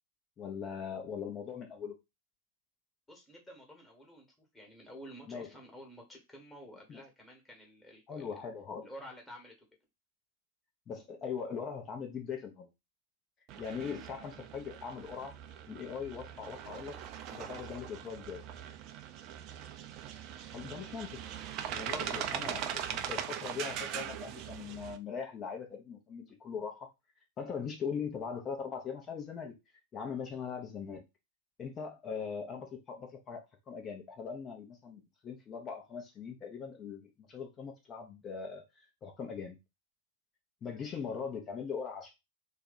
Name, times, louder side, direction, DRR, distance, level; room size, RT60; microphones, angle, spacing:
voice 1, 0.4-1.9 5.3-5.5 6.9-7.0 8.1-8.9 10.9-12.7 13.6-15.3 15.7-17.0 17.3-18.4 20.5-21.2 21.7-26.9 27.4-29.5 29.9-31.0 31.6-39.6 40.6-42.1, left 6 dB, 25° left, 0.8 m, -40 dB
voice 2, 3.1-8.3 8.8-9.5, equal, 10° left, 1.4 m, -51 dB
sound 1, 13.5-25.0, right 9 dB, 40° right, 0.4 m, -41 dB
2.7 x 2.2 x 4.1 m
figure-of-eight pair, 95°, 0 cm